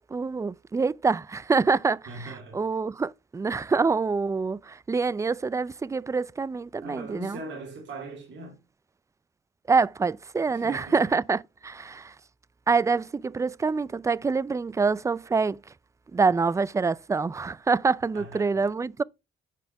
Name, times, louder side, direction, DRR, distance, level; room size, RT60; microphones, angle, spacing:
voice 1, 0.1-7.4 9.7-12.1 12.7-15.6 16.1-19.0, right 4 dB, 15° right, 0.3 m, -26 dB
voice 2, 2.1-2.6 6.8-8.6 10.5-11.0 18.1-18.7, right 2 dB, 65° right, 2.9 m, -40 dB
9.2 x 5.1 x 4.5 m
cardioid pair, 90°, 20 cm